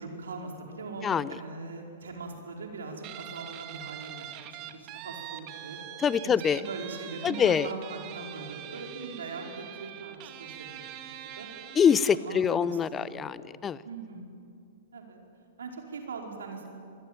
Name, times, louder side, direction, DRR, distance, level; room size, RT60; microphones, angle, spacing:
voice 1, 0.0-5.8 6.2-11.5 12.1-13.4 13.8-14.2 14.9-15.2 15.6-16.6, right 4 dB, 80° right, 2 dB, 4.9 m, -41 dB
voice 2, 1.0-1.4 6.0-6.6 7.2-7.7 11.8-13.8, left 7 dB, 20° left, 19 dB, 0.6 m, -25 dB
Guitar, 3.0-12.3, right 11 dB, 40° right, 2.2 m, -43 dB
26.5 x 21.0 x 9.2 m, 2.5 s
hypercardioid pair, 115°, 0 cm